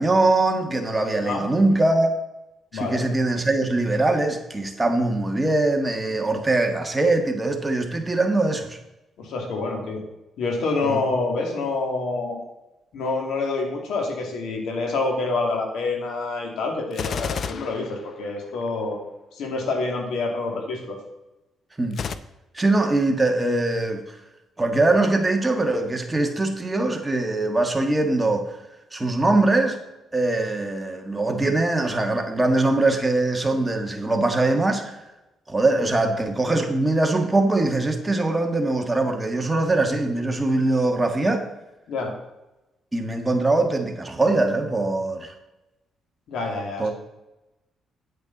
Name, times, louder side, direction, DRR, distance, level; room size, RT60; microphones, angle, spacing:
voice 1, 0.0-2.1 2.7-8.8 10.8-11.0 21.8-22.0 22.5-24.2 24.6-28.5 28.9-29.8 30.1-35.0 35.5-41.5 42.9-45.3 46.8-46.9, right 2 dB, 15° right, 4 dB, 1.5 m, -22 dB
voice 2, 2.7-3.0 9.2-10.0 10.4-12.4 12.9-19.0 19.3-21.0 41.9-42.1 46.3-46.9, left 3 dB, 75° left, 2 dB, 2.4 m, -27 dB
Gunshot gunfire, 16.9-18.7 21.9-22.1, left 6 dB, 55° left, 0.5 m, -31 dB
8.5 x 8.2 x 4.0 m, 0.98 s
cardioid pair, 90°, 0 cm